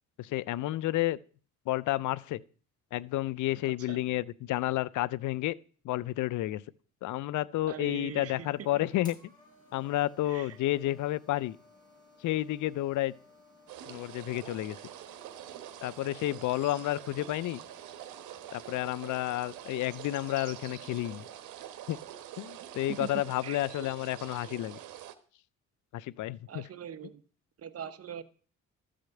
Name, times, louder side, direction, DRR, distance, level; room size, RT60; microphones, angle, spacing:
voice 1, 0.2-1.2 1.7-2.4 2.9-5.5 5.8-6.6 7.0-9.2 9.7-11.6 12.2-13.1 13.9-14.8 15.8-17.6 18.5-21.2 21.9-22.0 22.4-24.8 25.9-26.6, left 15 dB, 75° left, 0.5 m, -31 dB
voice 2, 7.7-8.7 10.3-10.6 23.0-23.1 23.4-23.6 26.5-27.2 27.6-28.2, right 8 dB, 50° right, 1.0 m, -41 dB
sound 1, 7.8-21.4, left 2 dB, 15° left, 5.4 m, -59 dB
sound 2, 13.7-25.1, right 12 dB, 90° right, 1.1 m, -46 dB
13.0 x 5.1 x 7.7 m
cardioid pair, 90°, 30 cm